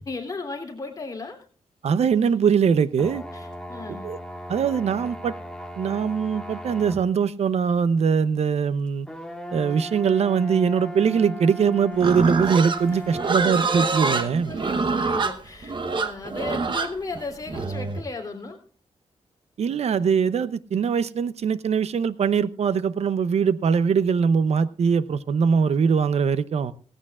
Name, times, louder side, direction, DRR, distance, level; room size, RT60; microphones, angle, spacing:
voice 1, 0.1-1.4 3.3-4.1 12.9-14.1 14.4-18.6, left 3 dB, 30° left, 2 dB, 3.4 m, -36 dB
voice 2, 1.8-3.2 4.0-4.2 4.5-5.3 5.8-9.1 9.5-14.6 19.6-26.7, right 6 dB, 70° right, 16 dB, 0.7 m, -22 dB
sound 1, 3.0-7.1 7.7-7.8 9.1-14.3, equal, 5° left, 1.6 m, -37 dB
Livestock farm animals working animals, 12.0-18.0, right 4 dB, 45° right, 1.0 m, -26 dB
17.5 x 15.5 x 2.4 m, 0.41 s
wide cardioid pair, 105°, 11 cm